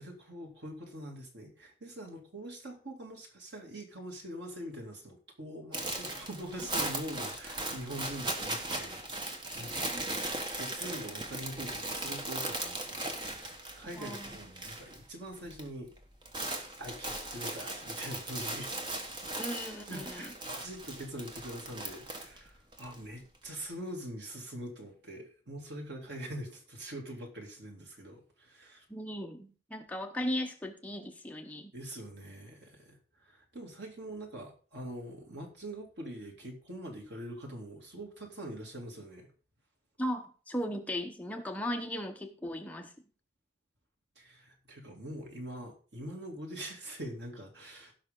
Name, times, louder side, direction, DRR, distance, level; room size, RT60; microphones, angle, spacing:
voice 1, 0.0-9.9 10.5-13.5 13.8-15.9 16.8-18.8 19.9-28.8 31.7-39.3 44.2-47.9, right 1 dB, 80° right, 1 dB, 2.8 m, -43 dB
sound 1, 5.7-15.0 15.3-15.7 16.0-22.9, right 2 dB, 25° right, 1.3 m, -38 dB
voice 2, 9.9-10.3 13.9-14.4 19.4-20.3 28.9-31.7 40.0-42.9, equal, 10° left, 4 dB, 0.9 m, -37 dB
16.5 x 5.8 x 3.8 m, 0.38 s
head